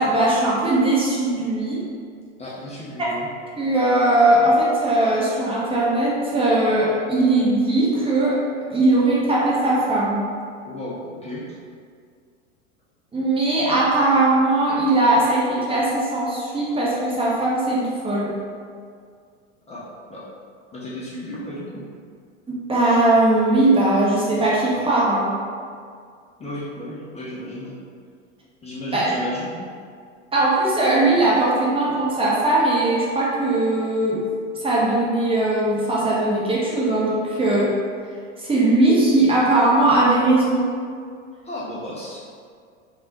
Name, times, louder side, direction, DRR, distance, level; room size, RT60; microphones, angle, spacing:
voice 1, 0.0-1.8 3.0-3.1 3.6-8.4 8.7-10.2 13.1-18.3 22.5-25.3 28.9-29.1 30.3-34.2 34.6-37.7 38.4-40.6, right 2 dB, 15° right, -6 dB, 0.9 m, -19 dB
voice 2, 2.4-3.3 10.7-11.4 19.7-19.8 20.1-20.2 20.7-21.8 26.4-27.7 28.6-29.6 41.4-42.2, left 1 dB, 15° left, -7 dB, 0.8 m, -33 dB
3.9 x 3.5 x 2.8 m, 2.1 s
figure-of-eight pair, 85°, 37 cm